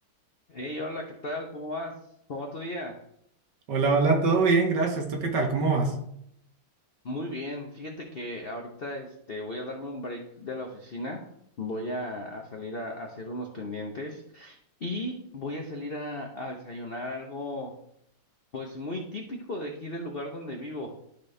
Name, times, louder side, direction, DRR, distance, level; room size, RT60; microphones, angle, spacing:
voice 1, 0.5-1.9 2.3-3.0 7.0-11.2 11.6-17.7 18.5-20.9, left 1 dB, 85° left, 2 dB, 0.5 m, -36 dB
voice 2, 3.7-6.0, right 4 dB, 60° right, 3 dB, 1.6 m, -23 dB
12.0 x 4.2 x 3.2 m, 0.73 s
omnidirectional pair, 2.3 m